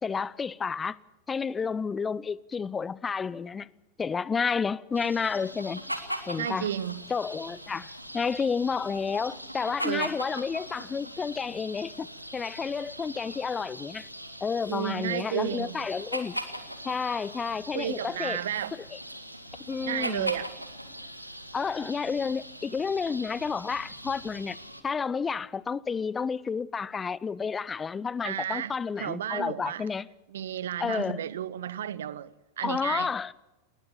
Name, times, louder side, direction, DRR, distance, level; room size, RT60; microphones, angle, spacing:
voice 1, 0.0-1.0 1.3-3.7 4.0-5.8 6.3-6.7 7.1-12.1 12.3-14.1 14.4-16.4 16.8-18.4 19.7-20.3 21.5-24.6 24.8-30.1 30.8-31.2 32.6-33.3, left 5 dB, 15° left, 0.6 m, -30 dB
sound 1, 4.9-24.8, equal, 90° right, 1.8 m, -40 dB
voice 2, 6.4-7.0 9.8-10.1 14.7-15.8 17.7-18.7 19.8-20.5 28.2-29.9 30.3-33.1, right 10 dB, 60° right, 0.8 m, -32 dB
21.0 x 19.5 x 7.0 m
figure-of-eight pair, 90°, 0 cm